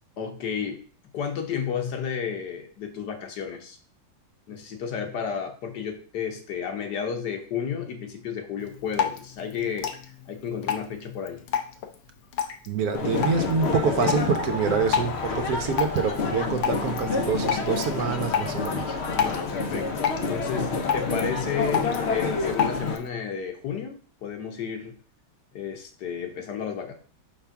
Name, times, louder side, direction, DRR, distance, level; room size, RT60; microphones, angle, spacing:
voice 1, 0.2-0.8 1.1-3.8 4.5-9.9 10.3-11.4 19.1-24.0 24.2-24.9 25.5-26.9, left 7 dB, 70° left, 5 dB, 1.5 m, -32 dB
Drip, 8.6-23.1, left 8 dB, 85° left, 1.5 m, -32 dB
voice 2, 12.7-19.0, right 5 dB, 65° right, 7 dB, 1.0 m, -26 dB
sound 1, 12.9-23.0, left 4 dB, 55° left, 0.8 m, -28 dB
5.4 x 3.5 x 5.7 m, 0.42 s
omnidirectional pair, 1.9 m